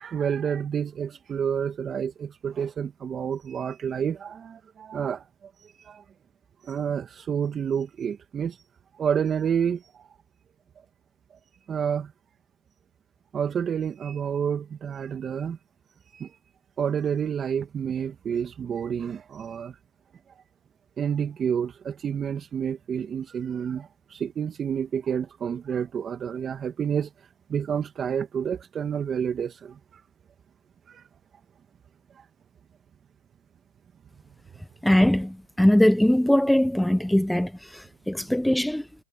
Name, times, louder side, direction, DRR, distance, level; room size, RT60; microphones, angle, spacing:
voice 1, 0.0-6.0 6.6-8.6 8.9-10.1 11.7-12.1 13.3-15.6 16.0-16.4 16.8-19.8 21.0-30.0 30.9-31.1 32.1-32.3 38.2-38.3, right 7 dB, 25° right, 2.2 m, -29 dB
voice 2, 34.8-38.9, left 1 dB, ahead, 0.6 m, -21 dB
hypercardioid pair, 125°, 0 cm